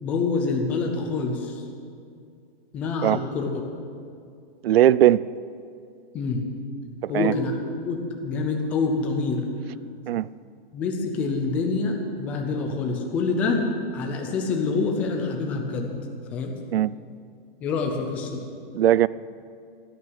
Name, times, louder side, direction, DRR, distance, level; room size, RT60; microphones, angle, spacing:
voice 1, 0.0-1.6 2.7-3.6 6.1-6.4 7.1-9.4 10.7-15.9 16.3-16.5 17.6-18.5, left 4 dB, 5° left, 0.3 m, -26 dB
voice 2, 4.6-5.2 7.0-7.3 10.1-10.3 16.7-16.9 18.7-19.1, right 12 dB, 85° right, 0.5 m, -19 dB
12.5 x 11.5 x 7.5 m
hypercardioid pair, 165°, 29 cm